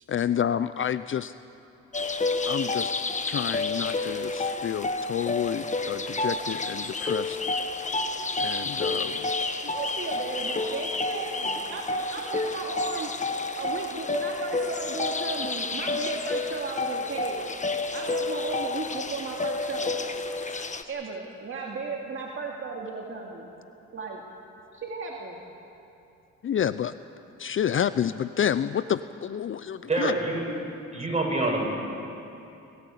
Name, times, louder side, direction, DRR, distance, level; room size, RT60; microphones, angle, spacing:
voice 1, 0.1-1.3 2.5-2.9 3.2-7.4 8.4-9.2 20.5-20.7 26.4-26.9 27.4-30.1, left 9 dB, 45° left, 14 dB, 0.5 m, -29 dB
sound 1, 1.9-20.8, left 3 dB, 25° left, 1.3 m, -30 dB
voice 2, 9.7-13.1 13.6-17.5 17.9-19.9 20.9-23.5 23.9-24.2 24.7-25.4, right 4 dB, 40° right, -1 dB, 2.5 m, -35 dB
voice 3, 29.9-30.5 30.9-31.7, right 2 dB, 20° right, -2 dB, 7.5 m, -26 dB
28.0 x 14.0 x 8.5 m, 2.8 s
cardioid pair, 90°, 30 cm